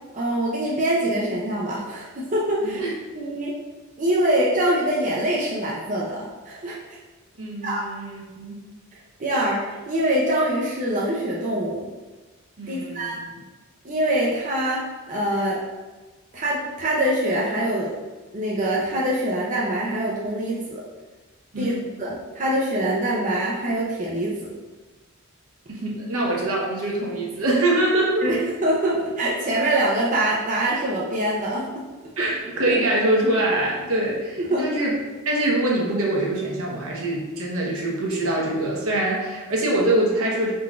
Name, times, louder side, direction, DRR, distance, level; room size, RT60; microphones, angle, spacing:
voice 1, 0.1-2.8 3.1-3.5 4.0-7.0 7.6-7.8 8.9-11.9 12.7-13.2 13.8-14.8 15.1-15.6 16.3-17.9 18.3-20.8 21.6-24.5 28.2-31.8 32.2-32.3 32.7-32.8 34.4-34.7, right 1 dB, 35° right, -5 dB, 0.6 m, -24 dB
voice 2, 2.6-3.0 7.4-8.6 12.6-13.2 21.5-21.9 25.7-28.3 32.2-34.9 35.2-40.5, right 1 dB, 75° right, -3 dB, 1.0 m, -24 dB
4.3 x 3.8 x 2.4 m, 1.2 s
head